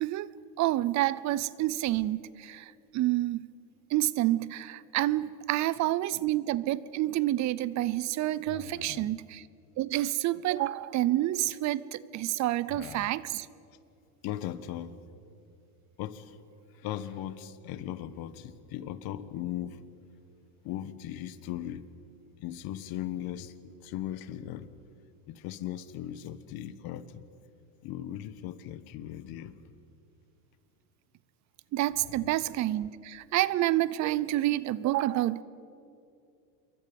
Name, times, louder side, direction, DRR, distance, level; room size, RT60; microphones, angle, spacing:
voice 1, 0.6-2.6 2.9-3.4 3.9-9.4 9.8-13.5 31.7-35.4, right 15 dB, 40° right, 19 dB, 0.6 m, -28 dB
voice 2, 8.5-9.2 12.7-13.1 14.2-15.0 16.0-16.4 16.8-19.8 20.6-21.8 22.4-24.7 25.3-27.2 27.8-29.6 32.0-32.3, left 12 dB, 50° left, 14 dB, 1.3 m, -38 dB
27.0 x 23.0 x 5.3 m, 2.6 s
supercardioid pair, 135°, 45 cm